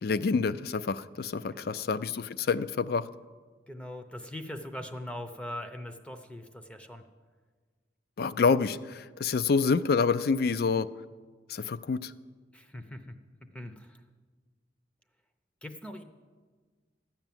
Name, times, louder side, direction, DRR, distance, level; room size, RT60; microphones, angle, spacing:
voice 1, 0.0-3.0 8.2-10.9 11.5-12.1, left 5 dB, 55° left, 14 dB, 0.4 m, -27 dB
voice 2, 1.5-1.9 3.7-7.0 12.5-13.2 13.5-14.0 15.6-16.0, left 1 dB, 5° left, 6 dB, 0.6 m, -41 dB
13.5 x 5.8 x 9.1 m, 1.5 s
head